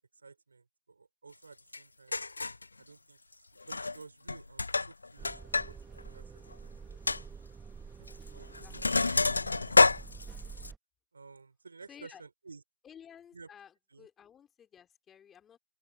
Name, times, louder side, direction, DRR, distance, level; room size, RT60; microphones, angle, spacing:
voice 1, 0.2-2.2 2.8-3.2 3.7-6.4 6.7-7.2 8.0-8.8 11.1-12.6 13.3-13.5 13.9-14.1, right 4 dB, 65° right, 4.7 m, -53 dB
Sink (filling or washing), 1.7-1.8 2.1-2.6 3.6-4.0 4.3-5.7 6.0-6.1 6.5-6.6 7.1-7.2 8.1-8.3 8.5-10.7, left 3 dB, 75° left, 0.6 m, -27 dB
sound 1, 5.2-10.8, right 5 dB, 5° right, 1.1 m, -48 dB
voice 2, 8.4-8.8 11.9-12.2 12.8-15.6, left 8 dB, 10° left, 3.3 m, -54 dB
open air
figure-of-eight pair, 150°, 0 cm